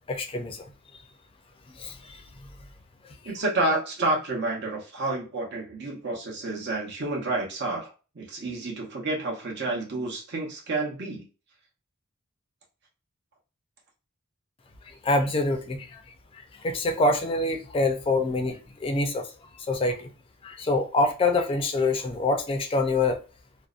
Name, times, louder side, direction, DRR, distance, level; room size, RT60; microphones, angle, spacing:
voice 1, 0.1-0.7 1.7-2.2 14.9-16.0 16.3-19.3 19.7-20.1 20.4-23.2, left 2 dB, 25° left, 0.4 m, -26 dB
voice 2, 3.2-11.2, right 2 dB, 55° right, 0.8 m, -29 dB
2.6 x 2.0 x 2.4 m
head